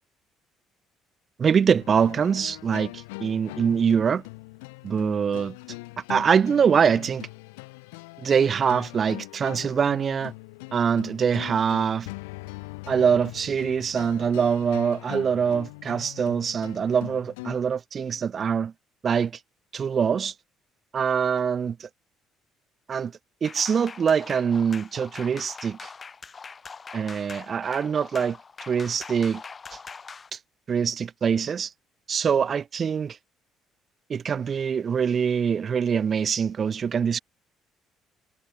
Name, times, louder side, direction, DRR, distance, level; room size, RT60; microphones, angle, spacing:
voice 1, 1.4-4.2 4.8-5.6 6.1-7.3 8.2-10.3 10.7-12.1 12.9-18.7 19.0-19.4 19.7-20.3 20.9-21.9 22.9-23.1 23.4-25.9 26.9-28.4 28.7-29.4 29.7-29.8 30.3-30.4 30.7-31.7 32.1-33.2 34.1-37.2, right 7 dB, 45° right, 0.7 m, -24 dB
sound 1, 1.8-17.6, left 26 dB, 75° left, 6.0 m, -41 dB
sound 2, 23.4-30.3, left 5 dB, 35° left, 6.6 m, -42 dB
hypercardioid pair, 50°, 0 cm